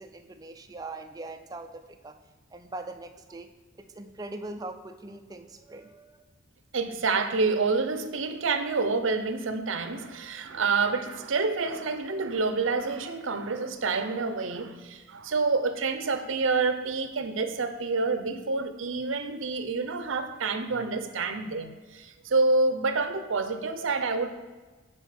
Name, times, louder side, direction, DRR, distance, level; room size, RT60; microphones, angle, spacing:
voice 1, 0.0-2.2 2.5-3.5 3.8-6.3 14.7-14.8, right 2 dB, 20° right, 6 dB, 0.4 m, -41 dB
voice 2, 6.7-24.3, right 4 dB, 70° right, 9 dB, 0.6 m, -28 dB
9.9 x 4.6 x 4.3 m, 1.3 s
head